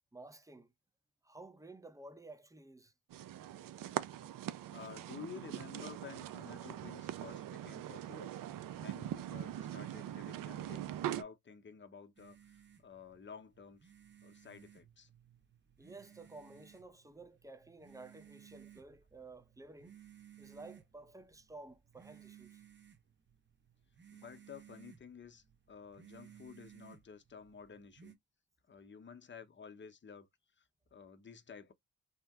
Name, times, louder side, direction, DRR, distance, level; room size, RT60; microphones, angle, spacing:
voice 1, 0.1-0.7 1.2-2.9 15.8-20.0 20.4-22.6, right 2 dB, 10° right, 0.5 m, -53 dB
sound 1, 3.1-11.2, right 12 dB, 55° right, 0.5 m, -42 dB
voice 2, 4.7-8.3 8.7-13.9 14.2-15.1 24.1-28.1 28.7-30.3 30.6-30.7 30.9-31.7, left 6 dB, 30° left, 0.8 m, -52 dB
sound 2, 12.2-28.1, right 9 dB, 25° right, 0.9 m, -60 dB
2.8 x 2.0 x 3.5 m
hypercardioid pair, 45°, 41 cm